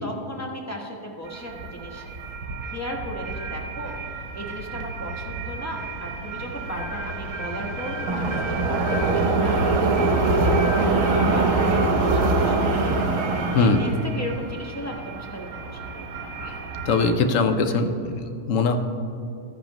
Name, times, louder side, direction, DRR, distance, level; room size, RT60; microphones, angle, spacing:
voice 1, 0.0-2.0 2.6-3.9 4.3-10.1 10.4-12.7 13.6-16.2, equal, 10° left, -1 dB, 1.0 m, -35 dB
sound 1, 1.3-17.1, right 3 dB, 60° right, 1.3 m, -25 dB
voice 2, 16.9-18.8, left 4 dB, 60° left, 7 dB, 1.0 m, -22 dB
13.5 x 10.0 x 3.0 m, 2.6 s
omnidirectional pair, 1.7 m